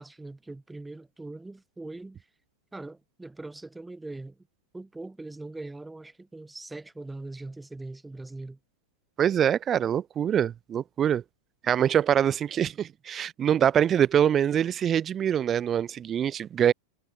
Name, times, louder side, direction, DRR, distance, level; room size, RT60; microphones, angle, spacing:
voice 1, 0.0-2.3 2.7-4.5 4.7-8.6, right 2 dB, 5° right, 4.4 m, -41 dB
voice 2, 9.2-11.2 11.6-16.7, right 9 dB, 25° right, 0.6 m, -24 dB
figure-of-eight pair, 90°, 0 cm